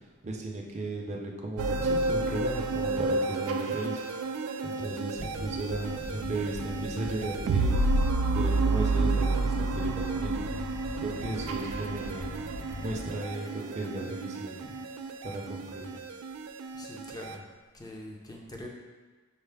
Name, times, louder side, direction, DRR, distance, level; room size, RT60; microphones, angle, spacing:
voice 1, 0.2-4.0 4.6-8.0 8.3-10.5 10.9-12.3 12.8-14.8 15.2-16.0, right 2 dB, 35° right, 0 dB, 0.5 m, -36 dB
sound 1, 1.6-17.4, right 3 dB, 90° right, 0.3 m, -30 dB
sound 2, 5.1-13.0, left 1 dB, 85° left, 0.9 m, -40 dB
voice 2, 16.7-17.4 17.7-18.7, left 1 dB, 20° left, -1 dB, 0.5 m, -43 dB
5.5 x 2.0 x 3.4 m, 1.4 s
head